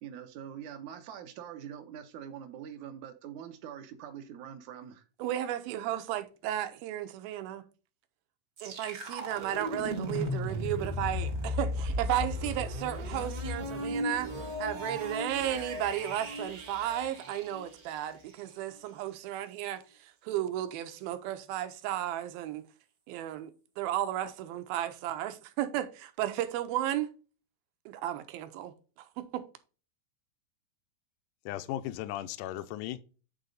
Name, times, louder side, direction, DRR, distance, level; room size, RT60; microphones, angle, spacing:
voice 1, 0.0-5.0, right 9 dB, 70° right, 1.9 m, -44 dB
voice 2, 5.2-7.6 8.6-14.3 14.6-22.7 23.1-27.1 27.9-29.4, right 12 dB, 90° right, 2.7 m, -34 dB
sound 1, 8.6-18.4, left 1 dB, 50° right, 1.1 m, -36 dB
voice 3, 31.5-33.1, left 13 dB, 80° left, 1.9 m, -36 dB
8.9 x 4.1 x 3.8 m
omnidirectional pair, 4.2 m